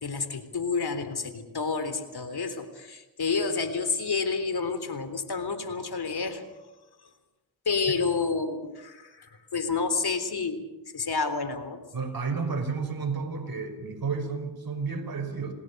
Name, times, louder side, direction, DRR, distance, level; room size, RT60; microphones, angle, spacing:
voice 1, 0.0-6.5 7.7-10.6 10.9-11.8, left 4 dB, 55° left, 10 dB, 3.6 m, -29 dB
voice 2, 11.9-15.5, right 5 dB, 50° right, 4 dB, 5.9 m, -31 dB
28.5 x 19.0 x 6.7 m, 1.1 s
cardioid pair, 50°, 45 cm